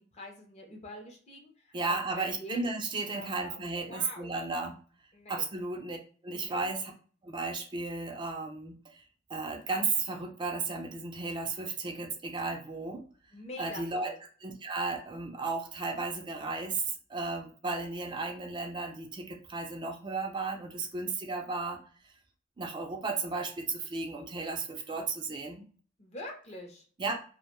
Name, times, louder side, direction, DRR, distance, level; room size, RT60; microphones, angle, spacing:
voice 1, 0.0-2.7 3.2-4.4 5.1-5.4 6.3-6.6 13.3-14.1 26.0-26.9, left 1 dB, 35° left, 3 dB, 0.6 m, -45 dB
voice 2, 1.7-4.8 5.3-6.0 6.2-6.9 7.2-9.0 9.3-13.0 13.6-14.1 14.4-21.8 22.6-25.6 27.0-27.2, right 3 dB, 25° right, 2 dB, 0.3 m, -34 dB
2.4 x 2.1 x 3.0 m, 0.42 s
head